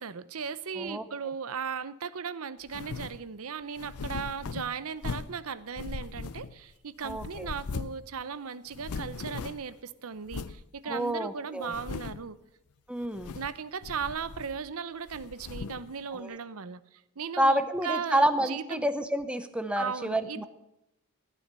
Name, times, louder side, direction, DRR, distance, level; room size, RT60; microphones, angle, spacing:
voice 1, 0.0-12.4 13.3-18.9 19.8-20.4, right 6 dB, 75° right, 16 dB, 0.7 m, -37 dB
sound 1, 2.7-3.2 3.8-5.4 5.8-6.7 7.0-8.1 8.3-8.4 8.7-9.7 10.3-10.6 11.1-11.2 11.6-12.3 13.0-13.6 13.8-14.7 15.1-15.9, left 4 dB, 90° left, 0.6 m, -39 dB
voice 2, 7.0-7.5 10.8-11.7 12.9-13.3 16.1-16.3 17.4-20.4, right 1 dB, 5° right, 10 dB, 0.7 m, -29 dB
15.5 x 9.2 x 6.8 m, 0.90 s
head